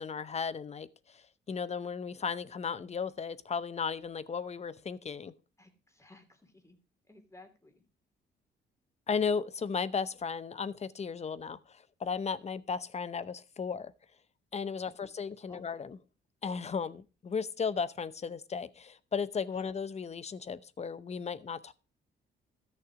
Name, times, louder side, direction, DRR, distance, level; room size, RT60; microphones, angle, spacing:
voice 1, 0.0-5.3 9.1-13.9 14.5-16.0 16.4-21.7, left 5 dB, 35° left, 0.7 m, -35 dB
voice 2, 5.6-6.8 7.1-7.8 15.0-15.1 15.5-15.7 19.5-19.6, left 2 dB, 15° left, 2.8 m, -57 dB
13.5 x 6.5 x 5.0 m
cardioid pair, 90°, 20 cm